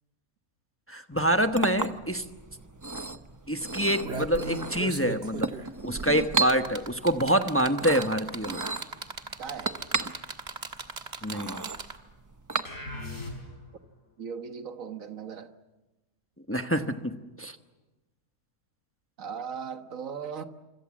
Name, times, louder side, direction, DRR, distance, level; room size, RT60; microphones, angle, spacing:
voice 1, 0.9-2.2 3.5-5.5 5.8-8.6 11.2-11.6 16.5-17.6, right 1 dB, 10° left, 1.0 m, -26 dB
Chink clink, 1.1-13.2, right 3 dB, 15° right, 0.7 m, -35 dB
sound 1, 2.5-2.6 2.9-3.2 3.7-12.2 13.3-13.4, right 3 dB, 50° right, 1.8 m, -38 dB
voice 2, 9.4-9.8 14.2-15.5 19.2-20.4, right 6 dB, 65° right, 1.8 m, -38 dB
sound 2, 12.6-13.8, left 2 dB, 65° left, 5.4 m, -38 dB
27.0 x 25.5 x 7.4 m
omnidirectional pair, 1.5 m